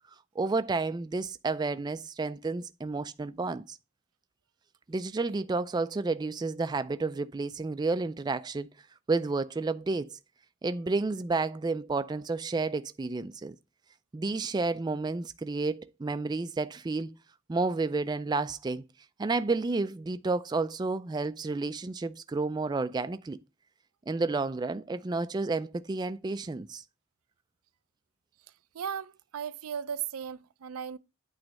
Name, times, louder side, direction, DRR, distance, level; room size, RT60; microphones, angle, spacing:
voice 1, 0.4-3.8 4.9-8.7 9.1-10.2 10.6-13.6 14.1-17.1 17.5-18.8 19.2-23.4 24.1-26.8, right 3 dB, 20° right, 0.3 m, -31 dB
voice 2, 28.7-31.0, right 8 dB, 85° right, 0.5 m, -36 dB
8.8 x 3.2 x 6.3 m
head